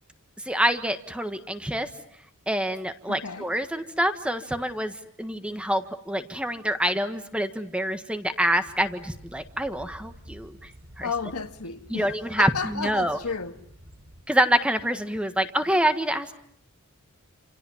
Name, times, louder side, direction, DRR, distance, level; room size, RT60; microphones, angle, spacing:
voice 1, 0.4-1.9 2.5-4.9 5.2-10.7 11.0-11.1 11.9-13.2 14.3-16.3, right 1 dB, 5° right, 1.5 m, -26 dB
voice 2, 3.1-3.5 11.0-12.1 12.4-13.6, left 5 dB, 85° left, 1.8 m, -32 dB
sound 1, 8.5-14.2, equal, 70° right, 3.7 m, -50 dB
28.5 x 28.0 x 7.2 m
head